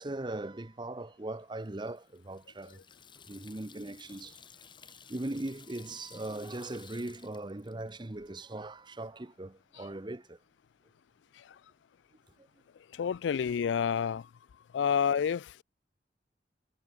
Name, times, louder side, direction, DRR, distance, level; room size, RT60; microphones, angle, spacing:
voice 1, 0.0-2.8 3.3-4.4 5.1-10.4, right 2 dB, 25° right, 0.8 m, -39 dB
Water tap faucet / Sink (filling or washing), 1.6-8.3, left 6 dB, 25° left, 4.9 m, -56 dB
voice 2, 12.9-14.3 14.7-15.6, left 7 dB, 85° left, 0.3 m, -29 dB
head